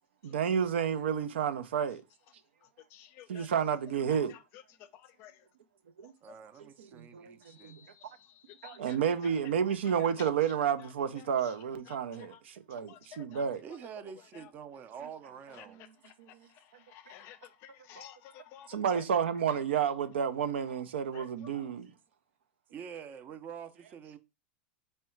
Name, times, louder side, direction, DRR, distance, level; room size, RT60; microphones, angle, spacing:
voice 1, 0.2-2.0 3.3-4.3 6.0-6.1 6.6-7.8 8.6-13.6 15.0-15.1 15.7-15.9 16.2-16.3 18.0-18.1 18.7-21.9, right 7 dB, 90° right, 0.4 m, -31 dB
voice 2, 2.9-3.5 4.8-5.4 7.4-8.1 8.5-8.8 12.9-13.4 14.3-14.5 15.5-15.6 16.0-16.1 16.5-18.7 21.1-21.2, left 11 dB, 45° left, 0.4 m, -53 dB
voice 3, 6.2-7.7 13.6-15.8 16.4-16.5 22.7-24.2, right 7 dB, 30° right, 0.5 m, -46 dB
3.6 x 2.2 x 4.3 m
supercardioid pair, 125°, 6 cm